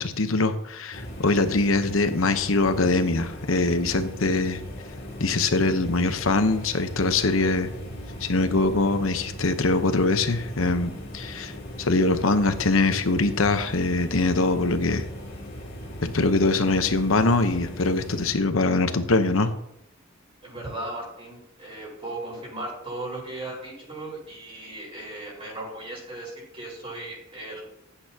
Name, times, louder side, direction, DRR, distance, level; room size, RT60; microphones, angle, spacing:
voice 1, 0.0-4.6 5.2-7.7 8.2-11.5 11.8-15.0 16.0-19.5, left 3 dB, 90° left, 9 dB, 1.0 m, -23 dB
sound 1, 0.9-18.3, equal, 55° left, 2.8 m, -38 dB
voice 2, 20.4-27.6, right 2 dB, 30° right, -3 dB, 5.0 m, -37 dB
15.0 x 8.8 x 2.9 m, 0.78 s
head